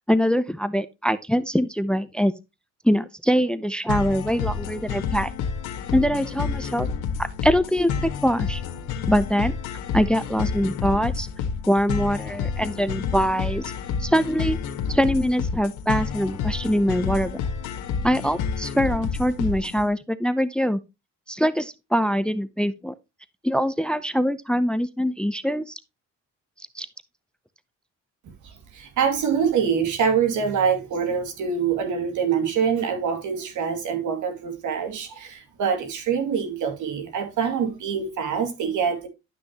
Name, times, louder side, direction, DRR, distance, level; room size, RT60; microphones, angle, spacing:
voice 1, 0.1-2.3 2.8-5.3 5.9-6.9 7.2-8.6 9.1-9.6 9.9-11.3 11.7-13.7 14.0-14.6 14.9-17.4 18.0-20.8 21.3-22.9 23.4-25.8 26.7-26.9, equal, 5° left, 0.6 m, -23 dB
sound 1, 3.9-19.9, left 6 dB, 85° left, 1.7 m, -29 dB
voice 2, 28.4-39.1, right 7 dB, 80° right, 2.6 m, -25 dB
11.5 x 6.1 x 2.9 m
cardioid pair, 90°, 30 cm